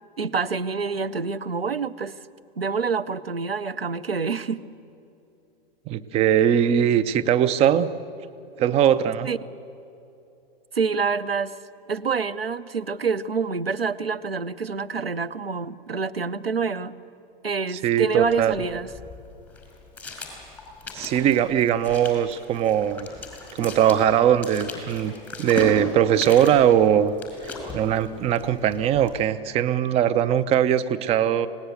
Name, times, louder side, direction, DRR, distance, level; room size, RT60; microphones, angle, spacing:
voice 1, 0.2-2.1 2.6-4.6 9.2-9.4 10.7-11.6 11.9-17.0 17.4-18.9, right 5 dB, 85° right, 13 dB, 0.7 m, -27 dB
voice 2, 5.9-7.9 8.6-9.3 17.8-18.5 20.9-23.1 23.6-25.1 25.4-27.1 27.7-31.5, right 10 dB, 20° right, 14 dB, 0.6 m, -20 dB
sound 1, 18.2-29.2, left 3 dB, 5° left, 5.0 m, -38 dB
25.0 x 18.5 x 8.0 m, 2.8 s
figure-of-eight pair, 100°, 29 cm